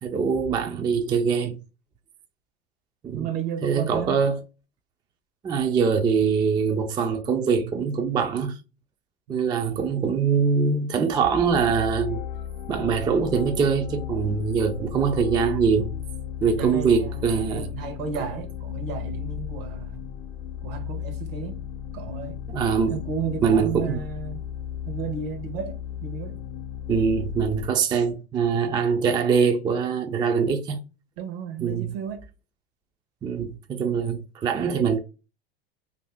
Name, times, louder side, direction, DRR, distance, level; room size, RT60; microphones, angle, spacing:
voice 1, 0.0-1.6 3.0-3.3 3.6-4.4 5.4-8.6 9.3-12.2 12.7-15.9 16.4-17.7 22.5-23.0 23.4-24.0 26.9-30.8 31.6-31.9 33.2-35.0, right 6 dB, 15° right, 0.3 m, -23 dB
voice 2, 3.1-4.2 9.3-9.4 16.5-20.0 20.6-21.6 21.9-22.4 22.9-24.4 24.8-26.4 31.2-32.2, right 6 dB, 65° right, 0.9 m, -33 dB
sound 1, 11.2-27.7, left 10 dB, 60° left, 0.6 m, -35 dB
2.7 x 2.6 x 3.4 m
hypercardioid pair, 100°, 30 cm